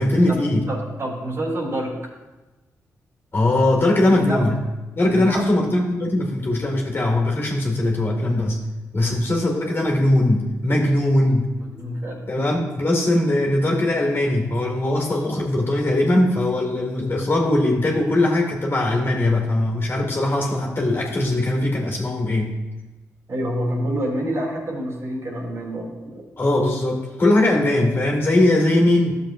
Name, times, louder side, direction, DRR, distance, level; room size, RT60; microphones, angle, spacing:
voice 1, 0.0-0.7 3.3-4.6 5.0-8.6 8.9-11.5 12.3-22.6 26.4-29.1, left 1 dB, 40° left, 0 dB, 2.1 m, -20 dB
voice 2, 0.7-2.0 4.0-4.4 5.0-5.4 9.0-9.2 11.6-12.4 23.3-26.2, equal, 55° right, -4 dB, 3.2 m, -28 dB
12.5 x 7.0 x 2.6 m, 1.1 s
cardioid pair, 70°, 6 cm